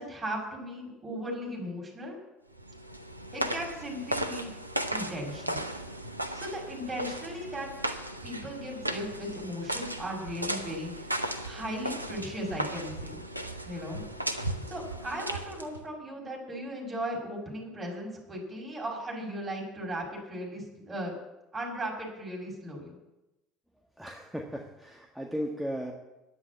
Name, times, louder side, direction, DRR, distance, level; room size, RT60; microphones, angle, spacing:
voice 1, 0.0-2.2 3.3-4.5 4.9-5.6 6.3-7.7 8.2-13.2 13.6-14.0 14.7-21.1 21.5-23.0, equal, 25° right, 0 dB, 6.5 m, -37 dB
sound 1, 2.6-15.9, right 1 dB, 90° right, 0.8 m, -36 dB
voice 2, 24.0-25.9, equal, ahead, 0 dB, 1.8 m, -36 dB
11.0 x 9.6 x 8.4 m, 0.99 s
figure-of-eight pair, 60°, 0 cm